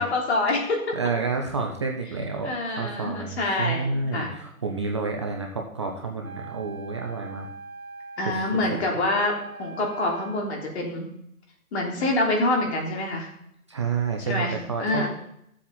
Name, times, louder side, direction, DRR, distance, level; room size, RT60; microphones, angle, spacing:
voice 1, 0.0-1.0 2.4-3.9 4.1-4.3 8.2-9.3 9.6-11.1 11.7-13.3 14.2-15.1, left 2 dB, 50° left, 0 dB, 3.3 m, -26 dB
voice 2, 0.9-7.5 8.2-8.4 13.7-15.1, right 4 dB, 20° right, 2 dB, 0.5 m, -29 dB
Wind instrument woodwind instrument, 6.2-10.6, right 3 dB, 80° right, 1.7 m, -42 dB
13.5 x 7.5 x 4.2 m, 0.75 s
hypercardioid pair, 150°, 42 cm